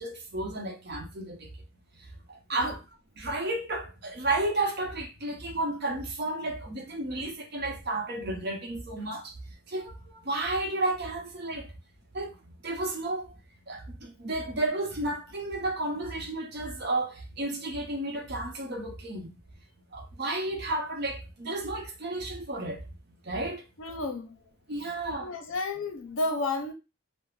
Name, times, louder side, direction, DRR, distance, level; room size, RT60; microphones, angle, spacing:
voice 1, 0.0-1.5 2.3-2.8 3.2-9.3 9.7-11.7 12.1-12.3 12.6-13.3 13.7-19.4 19.9-22.8 23.2-23.6 24.7-25.3, right 2 dB, 50° right, 0.7 m, -32 dB
voice 2, 23.8-24.4 25.2-26.7, left 2 dB, 75° left, 0.5 m, -31 dB
2.3 x 2.0 x 3.2 m
head